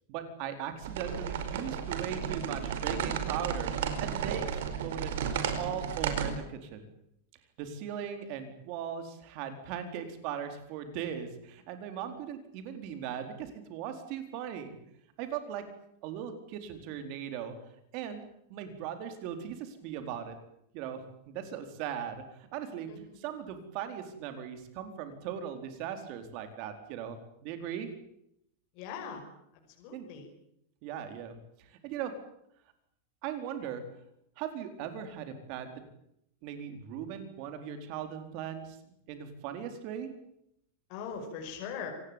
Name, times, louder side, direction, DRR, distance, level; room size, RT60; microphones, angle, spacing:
voice 1, 0.1-3.7 4.0-5.2 5.6-6.9 7.6-14.8 15.2-15.6 16.0-17.6 17.9-18.2 18.5-20.4 20.7-22.9 23.2-27.2 27.4-27.9 29.9-30.1 30.8-32.1 33.2-33.8 34.4-35.7 36.4-38.8 39.1-40.1, right 8 dB, 35° right, 8 dB, 4.3 m, -39 dB
sound 1, 0.8-6.3, right 8 dB, 65° right, 4.9 m, -33 dB
voice 2, 28.7-29.2 29.5-30.3 40.9-41.9, left 6 dB, 35° left, 2 dB, 5.7 m, -40 dB
25.5 x 19.5 x 9.0 m, 0.77 s
supercardioid pair, 175°, 0 cm